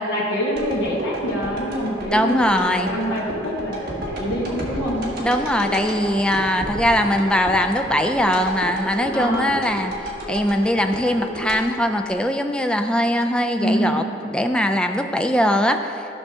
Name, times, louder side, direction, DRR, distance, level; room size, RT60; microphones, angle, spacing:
voice 1, 0.0-5.1 9.1-9.6 13.6-14.1, equal, 75° left, -7 dB, 1.5 m, -25 dB
sound 1, 0.5-12.7 13.2-13.3, equal, 50° right, 1.6 m, -32 dB
voice 2, 2.1-2.9 5.2-9.9 10.3-15.8, equal, 5° left, 6 dB, 0.3 m, -21 dB
13.5 x 6.2 x 3.7 m, 2.9 s
head